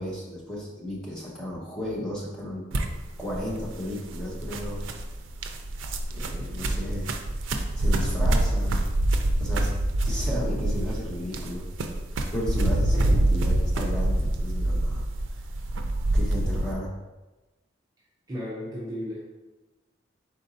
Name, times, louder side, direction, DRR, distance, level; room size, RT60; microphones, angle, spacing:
voice 1, 0.0-2.6 3.2-4.8 6.1-7.1 7.8-8.8 9.4-9.7 10.0-11.6 12.3-15.1 16.1-16.9, left 1 dB, 5° left, -5 dB, 0.9 m, -34 dB
sound 1, 2.7-16.7, right 1 dB, 80° right, 0.4 m, -26 dB
voice 2, 12.9-13.2 18.3-19.2, equal, 20° right, -6 dB, 0.5 m, -34 dB
4.3 x 3.9 x 2.7 m, 1.1 s
head